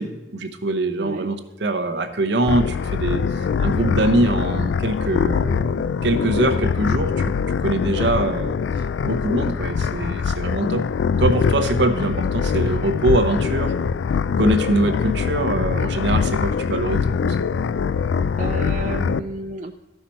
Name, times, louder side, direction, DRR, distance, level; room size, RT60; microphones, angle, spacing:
voice 1, 0.0-8.6 9.0-10.8 11.2-13.7 14.4-17.4, right 2 dB, 65° right, 8 dB, 0.8 m, -23 dB
voice 2, 1.0-1.3 7.8-8.2 18.4-19.7, right 3 dB, 40° right, 4 dB, 0.4 m, -32 dB
sound 1, 2.5-19.2, left 6 dB, 70° left, 0.3 m, -23 dB
13.5 x 5.8 x 4.3 m, 1.1 s
head